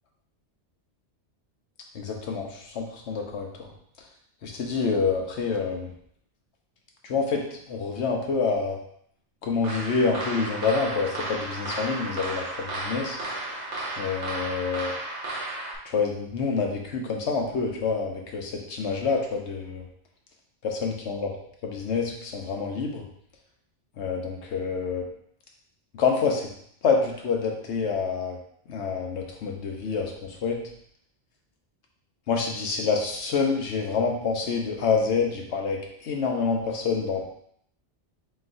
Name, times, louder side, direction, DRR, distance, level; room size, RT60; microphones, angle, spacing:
voice 1, 1.9-3.5 4.4-5.9 7.0-7.4 7.7-8.8 9.4-13.2 14.0-15.0 15.8-19.8 20.6-21.3 21.6-23.0 24.0-25.0 26.0-26.5 26.8-28.4 28.7-30.6 32.3-35.8 36.0-37.2, left 5 dB, 75° left, 1 dB, 1.1 m, -27 dB
sound 1, 9.6-15.7, right 2 dB, 90° right, 1.2 m, -33 dB
4.2 x 4.0 x 2.6 m, 0.67 s
omnidirectional pair, 1.2 m